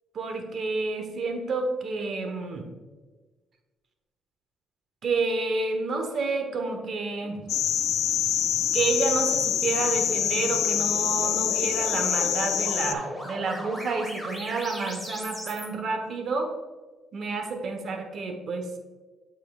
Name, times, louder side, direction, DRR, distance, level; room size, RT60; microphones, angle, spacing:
voice 1, 0.1-2.6 5.0-7.4 8.7-16.5 17.1-18.8, right 3 dB, 60° right, 5 dB, 1.2 m, -29 dB
sound 1, 7.2-15.7, equal, 10° right, 2.0 m, -39 dB
sound 2, 7.5-12.9, left 10 dB, 80° left, 0.4 m, -25 dB
8.3 x 5.6 x 2.4 m, 1.3 s
cardioid pair, 90°, 0 cm